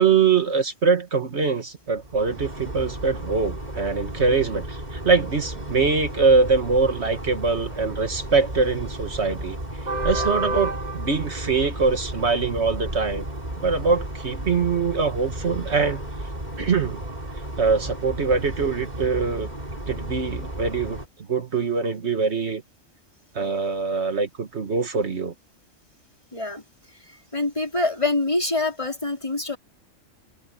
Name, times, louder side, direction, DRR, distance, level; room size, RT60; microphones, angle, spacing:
voice 1, 0.0-9.6 10.0-13.2 13.6-16.0 16.6-17.0 17.6-19.5 19.9-21.0 21.3-22.6 23.3-25.3, right 4 dB, 60° right, 1.7 m, -23 dB
sound 1, 1.9-21.1, right 1 dB, 35° right, 4.5 m, -33 dB
voice 2, 26.3-26.6 27.1-29.6, left 2 dB, 25° left, 3.5 m, -26 dB
omnidirectional pair, 1.3 m